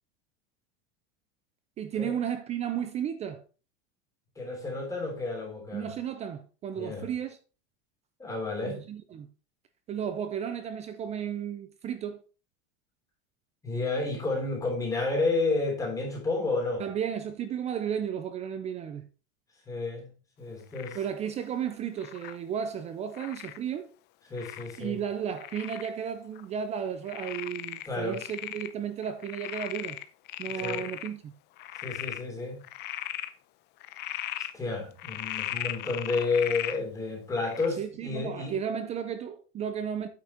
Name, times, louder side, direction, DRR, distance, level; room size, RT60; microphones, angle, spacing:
voice 1, 1.8-3.4 5.7-7.4 8.7-9.3 9.9-12.2 16.8-19.1 20.9-23.9 24.8-30.0 30.4-31.3 37.8-40.1, right 8 dB, 20° right, 0.5 m, -33 dB
voice 2, 4.3-5.9 6.8-7.1 8.2-8.8 13.6-16.8 19.7-20.1 20.4-21.0 24.3-25.0 27.9-28.2 30.6-30.9 31.7-32.6 34.4-38.5, left 3 dB, 10° left, 3.3 m, -31 dB
Frog, 20.7-21.1 22.0-22.4 23.1-23.6 24.4-24.8 25.4-25.9 26.4-26.5 27.1-28.7 29.0-31.1 31.6-32.2 32.6-33.3 33.8-34.5 35.0-36.8 37.4-37.7, left 13 dB, 30° left, 0.6 m, -37 dB
9.0 x 6.0 x 4.3 m
supercardioid pair, 160°, 33 cm